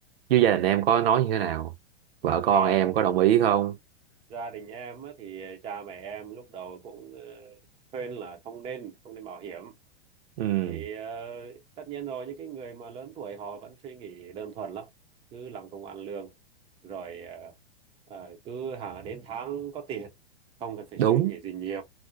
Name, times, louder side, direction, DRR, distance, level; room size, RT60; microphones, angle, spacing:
voice 1, 0.3-1.7 2.2-3.8 10.4-10.8 21.0-21.3, right 10 dB, 65° right, 0.7 m, -22 dB
voice 2, 2.5-2.9 4.3-7.6 7.9-9.7 10.6-14.9 15.3-16.3 16.8-17.6 18.1-20.1 20.6-21.8, right 6 dB, 15° right, 0.5 m, -38 dB
2.4 x 2.1 x 2.5 m
hypercardioid pair, 125°, 33 cm